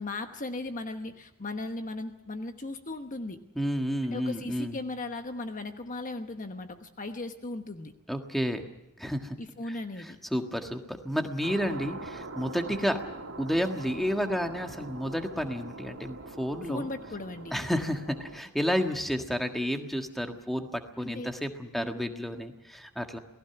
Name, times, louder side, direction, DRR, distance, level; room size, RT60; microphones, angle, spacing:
voice 1, 0.0-3.4 4.1-7.9 9.4-10.2 16.7-17.6 21.0-21.3 21.8-21.9, left 2 dB, 35° left, 7 dB, 1.1 m, -37 dB
voice 2, 3.5-4.8 8.1-8.7 9.0-9.4 9.7-13.0 13.4-16.9 17.5-23.2, equal, ahead, 4 dB, 1.6 m, -31 dB
sound 1, 11.4-18.4, right 2 dB, 65° right, 2.9 m, -43 dB
28.5 x 19.0 x 5.9 m, 0.85 s
head